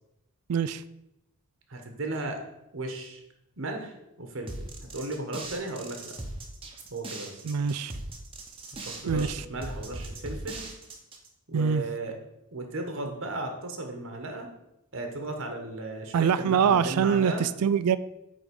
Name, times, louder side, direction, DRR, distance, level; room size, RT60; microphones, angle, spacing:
voice 1, 0.5-0.8 7.4-7.9 9.1-9.4 11.5-11.8 16.1-18.0, right 7 dB, 90° right, 15 dB, 0.4 m, -24 dB
voice 2, 1.7-2.4 2.7-3.2 3.6-6.2 6.9-7.4 8.8-10.6 11.5-12.1 12.5-14.5 14.9-17.5, right 2 dB, 60° right, 4 dB, 1.3 m, -35 dB
sound 1, 4.5-11.3, right 2 dB, 25° right, 1.0 m, -39 dB
9.3 x 3.8 x 5.3 m, 0.86 s
head